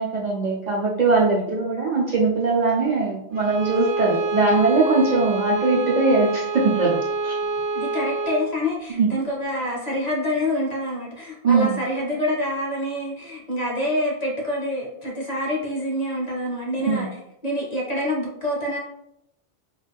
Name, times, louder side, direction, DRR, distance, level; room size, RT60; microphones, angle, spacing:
voice 1, 0.0-6.9 7.2-7.4 8.9-9.1 11.4-11.8 16.9-17.1, right 3 dB, 55° right, -5 dB, 0.5 m, -21 dB
Bowed string instrument, 3.3-8.5, right 3 dB, 80° right, 0.9 m, -26 dB
voice 2, 7.7-17.1 17.4-18.8, left 1 dB, 45° left, -3 dB, 0.7 m, -26 dB
2.3 x 2.1 x 3.3 m, 0.79 s
omnidirectional pair, 1.1 m